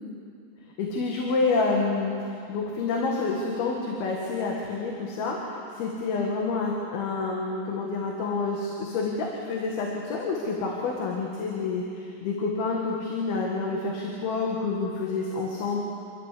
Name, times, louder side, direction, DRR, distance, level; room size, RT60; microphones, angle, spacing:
voice 1, 0.8-5.4 5.7-15.8, left 3 dB, 85° left, -1 dB, 3.8 m, -28 dB
28.0 x 12.5 x 8.5 m, 2.5 s
omnidirectional pair, 4.3 m